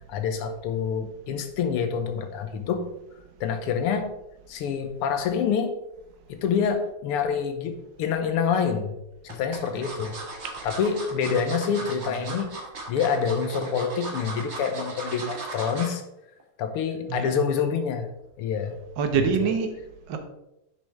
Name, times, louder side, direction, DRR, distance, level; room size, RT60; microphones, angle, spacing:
voice 1, 0.1-2.9 3.4-4.1 4.5-5.8 6.3-8.9 9.2-10.2 10.6-12.5 12.9-16.0 16.6-18.1 18.4-18.8 19.2-19.5, left 6 dB, 85° left, 8 dB, 1.9 m, -27 dB
sound 1, 8.1-8.6 9.3-16.0 16.4-16.6 16.9-17.0, right 2 dB, 35° right, 1.5 m, -37 dB
voice 2, 19.0-20.2, right 6 dB, 60° right, 6 dB, 1.6 m, -27 dB
9.9 x 6.3 x 3.6 m, 0.88 s
omnidirectional pair, 2.4 m